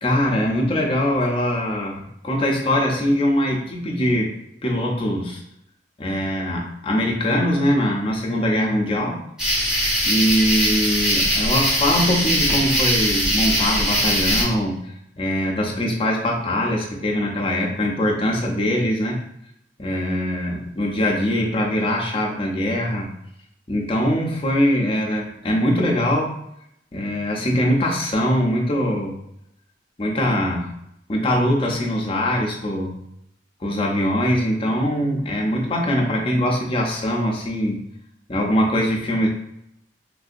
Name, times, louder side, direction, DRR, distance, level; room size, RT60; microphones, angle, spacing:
voice 1, 0.0-4.3 4.6-5.4 6.0-9.2 10.0-14.8 15.2-19.2 19.8-23.1 23.7-26.3 26.9-29.2 30.0-30.7 31.1-32.9 33.6-37.9 38.3-39.3, equal, 30° left, -1 dB, 0.6 m, -22 dB
sound 1, 9.4-14.4, equal, 5° right, 1.4 m, -21 dB
3.2 x 2.7 x 2.5 m, 0.78 s
head